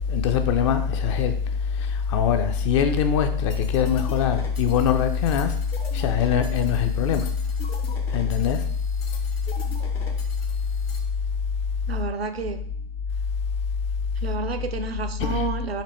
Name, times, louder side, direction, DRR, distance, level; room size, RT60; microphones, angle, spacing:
voice 1, 0.1-1.3 1.8-5.5 5.9-7.2 8.1-8.6 15.2-15.5, left 7 dB, 30° left, 0.4 m, -22 dB
sound 1, 3.5-11.0, left 4 dB, 75° left, 0.9 m, -43 dB
voice 2, 11.9-12.6 14.2-15.8, right 4 dB, 85° right, 0.6 m, -30 dB
4.2 x 2.8 x 4.2 m
figure-of-eight pair, 105°, 30 cm